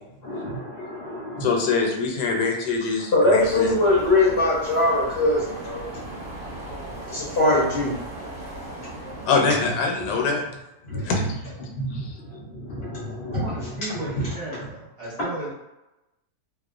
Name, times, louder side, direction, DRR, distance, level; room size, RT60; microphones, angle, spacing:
voice 1, 0.2-0.6 1.0-1.5 3.1-5.4 5.6-5.8 7.1-7.9 10.1-10.2 11.8-11.9 13.3-13.4 14.1-14.3, left 2 dB, 65° left, -6 dB, 0.6 m, -21 dB
voice 2, 1.4-3.7 9.2-10.4 11.0-11.2 11.9-12.1, left 4 dB, 90° left, 1 dB, 1.2 m, -24 dB
sound 1, 3.4-9.3, right 1 dB, 55° right, 0.9 m, -37 dB
voice 3, 13.3-15.5, right 1 dB, 40° right, -9 dB, 1.1 m, -35 dB
2.8 x 2.1 x 2.4 m, 0.95 s
omnidirectional pair, 1.8 m